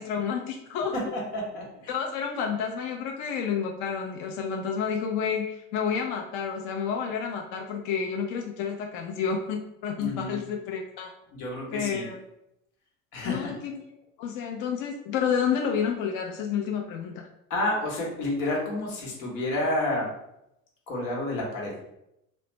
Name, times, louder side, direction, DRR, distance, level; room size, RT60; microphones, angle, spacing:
voice 1, 0.0-0.9 1.9-11.1 11.7-12.2 13.2-13.8 14.2-17.3, left 7 dB, 50° left, 2 dB, 0.4 m, -30 dB
voice 2, 0.9-1.9 10.0-10.4 11.3-12.1 13.1-13.5 17.5-20.1 20.9-21.8, left 1 dB, 75° left, -2 dB, 1.0 m, -30 dB
2.4 x 2.1 x 3.0 m, 0.82 s
hypercardioid pair, 75°, 42 cm